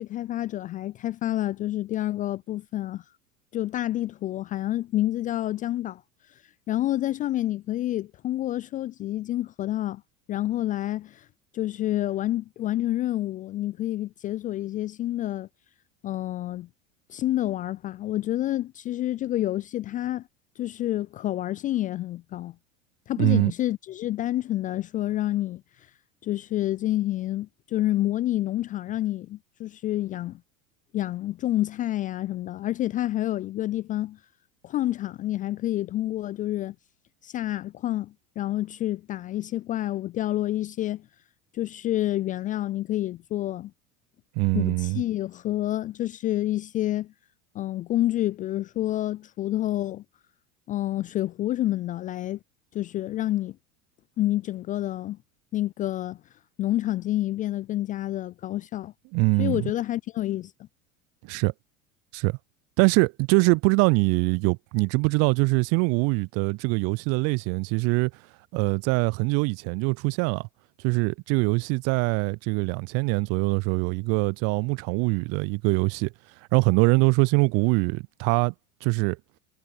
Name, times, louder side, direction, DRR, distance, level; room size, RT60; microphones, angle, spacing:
voice 1, 0.0-3.0 3.5-6.0 6.7-10.0 10.3-11.3 11.5-15.5 16.0-16.7 17.1-20.2 20.6-22.5 23.1-25.6 26.2-30.4 30.9-34.2 34.6-36.7 37.2-41.0 41.5-43.7 44.5-47.1 47.5-50.0 50.7-52.4 52.7-53.6 54.2-55.2 55.5-56.2 56.6-58.9 59.4-60.7, left 14 dB, 20° left, 0.3 m, -28 dB
voice 2, 23.2-23.5 44.4-45.0 59.1-59.6 61.2-61.5 62.1-62.4 62.8-68.1 68.5-70.5 70.8-76.1 76.5-78.5 78.8-79.2, right 30 dB, 40° right, 0.4 m, -23 dB
figure-of-eight pair, 80°, 39 cm